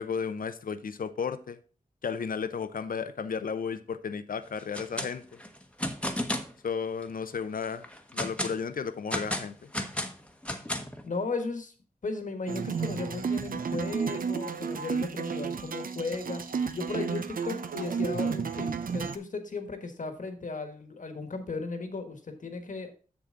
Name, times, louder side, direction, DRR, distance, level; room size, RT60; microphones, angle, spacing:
voice 1, 0.0-1.6 2.0-5.4 6.6-7.8 8.1-9.7, left 6 dB, 90° left, 0.7 m, -33 dB
sound 1, 4.6-5.1 5.4-6.5 7.0-7.1 7.6-8.6 9.1-11.0, left 1 dB, 10° left, 0.9 m, -33 dB
voice 2, 11.0-11.7 12.0-16.4 16.7-22.9, left 3 dB, 65° left, 1.5 m, -36 dB
sound 2, 12.5-19.2, right 6 dB, 85° right, 0.7 m, -32 dB
7.4 x 7.0 x 3.8 m
wide cardioid pair, 90°, 14 cm